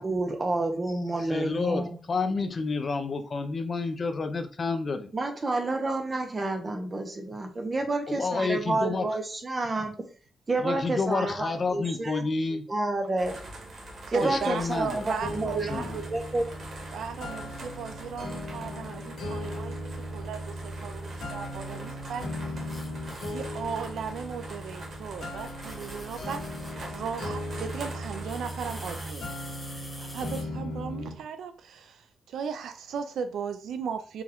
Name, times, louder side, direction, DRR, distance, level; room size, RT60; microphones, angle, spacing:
voice 1, 0.0-2.0 5.1-9.9 10.5-12.3 12.7-13.4 14.1-16.4, right 2 dB, 20° right, 0.6 m, -29 dB
voice 2, 1.3-5.1 8.1-9.1 10.6-12.6 14.2-15.0 15.7-16.0, left 4 dB, 30° left, 0.5 m, -29 dB
sound 1, 13.2-29.1, right 1 dB, 45° right, 1.1 m, -44 dB
voice 3, 14.1-15.9 16.9-19.8 20.1-22.3 23.2-26.4 26.9-29.3 30.0-34.2, right 6 dB, 70° right, 0.4 m, -36 dB
sound 2, 15.2-31.2, left 1 dB, 80° left, 1.6 m, -37 dB
sound 3, 22.7-23.4 24.8-24.9 25.4-26.8 28.3-30.4, left 1 dB, 5° left, 1.2 m, -46 dB
4.6 x 2.3 x 3.5 m
wide cardioid pair, 175°, 0 cm